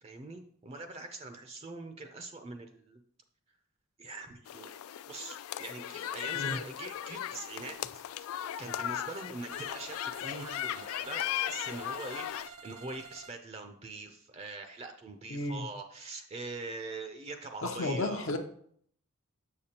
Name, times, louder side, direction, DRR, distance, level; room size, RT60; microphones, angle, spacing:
voice 1, 0.0-3.0 4.0-4.8 5.1-18.3, right 3 dB, 30° right, 6 dB, 0.4 m, -43 dB
sound 1, 4.5-12.5, left 11 dB, 85° left, 0.3 m, -37 dB
sound 2, 9.5-13.4, right 5 dB, 85° right, 0.6 m, -50 dB
voice 2, 15.3-15.7 17.6-18.4, left 2 dB, 65° left, 4 dB, 0.7 m, -32 dB
6.7 x 6.7 x 2.9 m, 0.63 s
head